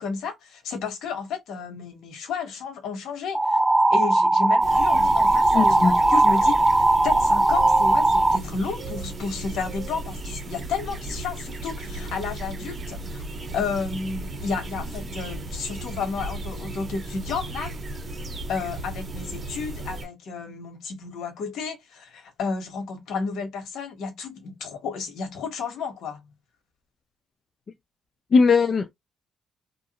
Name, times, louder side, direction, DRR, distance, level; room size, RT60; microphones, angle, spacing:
voice 1, 0.0-3.6 3.9-13.2 13.5-17.7 18.5-26.2, left 5 dB, 75° left, 1.1 m, -32 dB
sound 1, 3.3-8.4, right 2 dB, 15° right, 0.6 m, -19 dB
sound 2, 4.6-20.1, right 2 dB, 40° right, 1.2 m, -35 dB
voice 2, 5.5-6.0 28.3-28.9, left 4 dB, 45° left, 0.4 m, -19 dB
2.9 x 2.4 x 2.8 m
cardioid pair, 90°, 0 cm